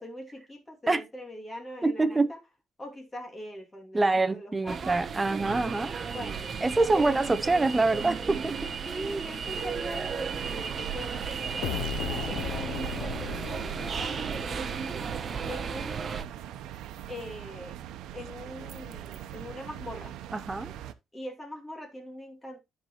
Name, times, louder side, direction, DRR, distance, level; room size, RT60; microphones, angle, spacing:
voice 1, 0.0-2.4 2.8-5.0 6.1-6.6 6.9-7.2 7.5-7.6 8.8-16.1 17.1-17.8 18.1-20.1 21.1-22.6, equal, 15° left, 2.6 m, -42 dB
voice 2, 1.8-2.3 3.9-5.9 6.6-8.7 20.3-20.7, right 3 dB, 15° right, 0.7 m, -25 dB
sound 1, 4.7-16.2, right 6 dB, 35° right, 0.9 m, -34 dB
sound 2, 10.3-20.9, right 11 dB, 80° right, 0.8 m, -42 dB
sound 3, 11.6-15.3, left 11 dB, 85° left, 0.7 m, -37 dB
13.0 x 4.8 x 3.0 m
cardioid pair, 150°, 0 cm